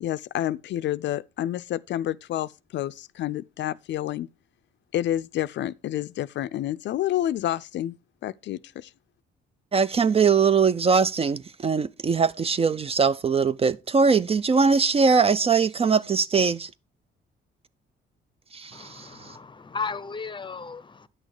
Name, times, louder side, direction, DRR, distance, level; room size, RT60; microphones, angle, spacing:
voice 1, 0.0-4.3 4.9-8.0 8.2-8.9, left 12 dB, 65° left, 0.4 m, -29 dB
voice 2, 9.7-16.7 18.5-19.4, right 5 dB, 30° right, 0.4 m, -21 dB
voice 3, 18.7-21.1, left 5 dB, 25° left, 0.7 m, -35 dB
10.0 x 6.3 x 4.8 m
cardioid pair, 90°, 20 cm